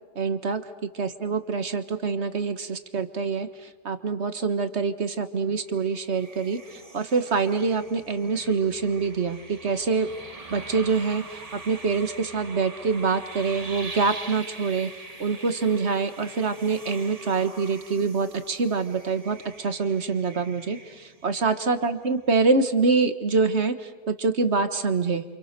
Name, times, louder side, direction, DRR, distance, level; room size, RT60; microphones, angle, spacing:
voice 1, 0.1-0.6 0.9-10.1 10.5-14.9 15.2-25.2, right 4 dB, 45° right, 10 dB, 1.6 m, -25 dB
sound 1, 5.7-22.0, right 2 dB, 25° right, 1.6 m, -43 dB
29.5 x 27.0 x 6.7 m, 1.3 s
omnidirectional pair, 1.7 m